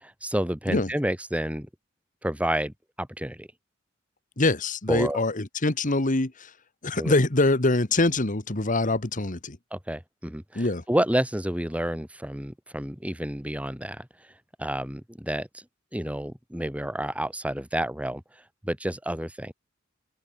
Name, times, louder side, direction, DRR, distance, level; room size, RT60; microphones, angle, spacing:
voice 1, 0.0-1.7 2.2-3.5 4.9-5.2 6.9-7.1 9.7-14.1 14.6-15.6 15.9-18.2 18.6-19.5, right 1 dB, 5° right, 3.6 m, -30 dB
voice 2, 4.4-6.5 6.8-9.6 10.6-10.8, left 2 dB, 40° left, 1.7 m, -24 dB
open air
head